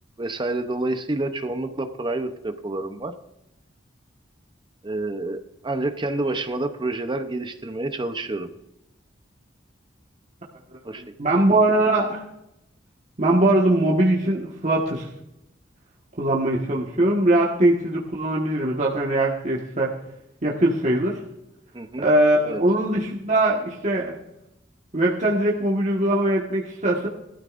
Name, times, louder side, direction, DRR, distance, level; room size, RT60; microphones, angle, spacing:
voice 1, 0.2-3.1 4.8-8.5 10.8-11.0 21.7-22.1 22.4-22.6, right 2 dB, 25° right, 8 dB, 0.7 m, -28 dB
voice 2, 11.2-12.2 13.2-15.1 16.2-19.9 20.4-21.2 22.0-24.1 24.9-27.1, right 1 dB, 40° right, -4 dB, 1.5 m, -21 dB
18.5 x 13.0 x 2.6 m, 0.86 s
head